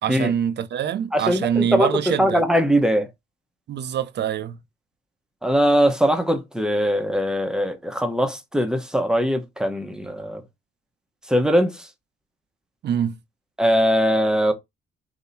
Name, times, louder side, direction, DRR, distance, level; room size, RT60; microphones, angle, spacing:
voice 1, 0.0-2.4 3.7-4.6 12.8-13.2, right 9 dB, 60° right, 0.7 m, -24 dB
voice 2, 1.1-3.1 5.4-10.4 11.3-11.9 13.6-14.5, equal, 5° right, 1.0 m, -21 dB
3.7 x 2.9 x 4.1 m
cardioid pair, 90°, 20 cm